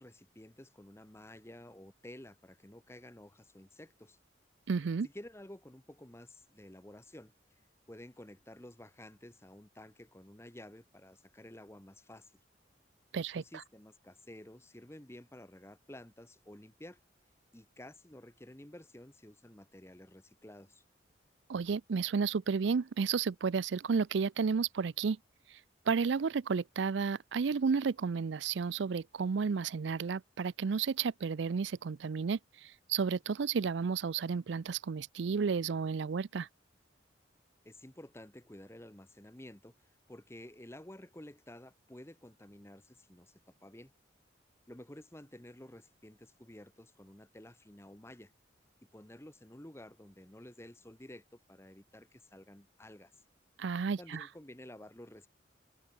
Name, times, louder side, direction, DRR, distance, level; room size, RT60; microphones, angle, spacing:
voice 1, 0.0-4.2 5.0-7.6 7.9-12.3 13.2-17.0 17.5-20.8 37.6-43.9 44.7-48.3 48.9-53.1 54.0-55.3, left 1 dB, 15° left, 1.2 m, -52 dB
voice 2, 4.7-5.1 13.1-13.4 21.5-25.2 25.9-36.5 53.6-54.2, right 5 dB, 75° right, 0.4 m, -32 dB
open air
head